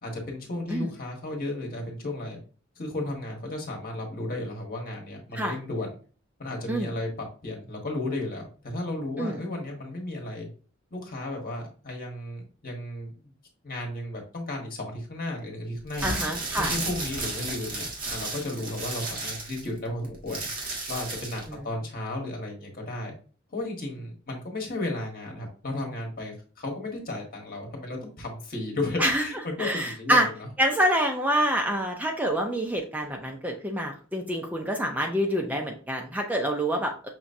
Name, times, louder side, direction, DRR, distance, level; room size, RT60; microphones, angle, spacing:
voice 1, 0.0-2.4 2.8-5.9 6.4-10.5 10.9-13.3 13.6-16.1 16.6-20.5 20.9-23.1 23.5-30.5, left 2 dB, 45° left, 1 dB, 1.4 m, -34 dB
sound 1, 15.8-21.5, right 2 dB, 45° right, 1.5 m, -33 dB
voice 2, 16.0-16.7 21.5-21.6 29.0-29.2 29.6-30.3 30.6-37.1, equal, 10° right, 2 dB, 0.5 m, -26 dB
5.9 x 3.1 x 2.6 m, 0.39 s
head